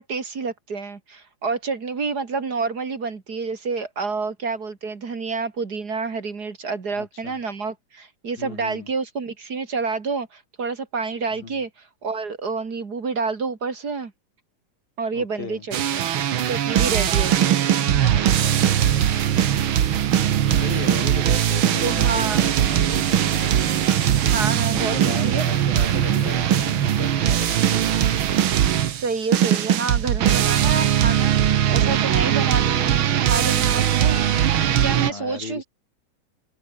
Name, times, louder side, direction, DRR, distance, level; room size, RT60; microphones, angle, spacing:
voice 1, 0.0-14.1 15.0-16.1 16.4-17.6 21.8-22.5 24.2-25.4 28.9-31.3 31.7-34.2 34.7-35.6, right 4 dB, 30° right, 2.3 m, -28 dB
voice 2, 6.9-7.4 8.4-8.9 11.4-11.6 15.1-15.7 20.5-23.8 24.7-28.3 35.1-35.6, left 5 dB, 90° left, 6.8 m, -36 dB
sound 1, 15.7-35.1, right 10 dB, 65° right, 1.3 m, -20 dB
sound 2, 18.0-28.4, left 4 dB, 35° left, 4.2 m, -46 dB
open air
omnidirectional pair, 4.0 m